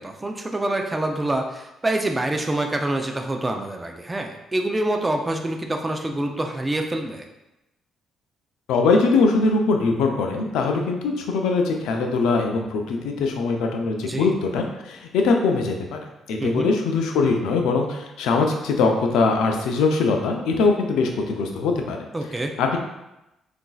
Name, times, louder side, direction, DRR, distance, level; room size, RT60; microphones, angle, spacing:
voice 1, 0.0-7.2 14.0-14.3 16.4-16.7 22.1-22.5, right 1 dB, 15° right, 3 dB, 0.3 m, -26 dB
voice 2, 8.7-16.0 16.3-22.1 22.6-22.8, left 4 dB, 90° left, 3 dB, 0.4 m, -22 dB
3.9 x 2.5 x 2.3 m, 0.93 s
cardioid pair, 90°, 0 cm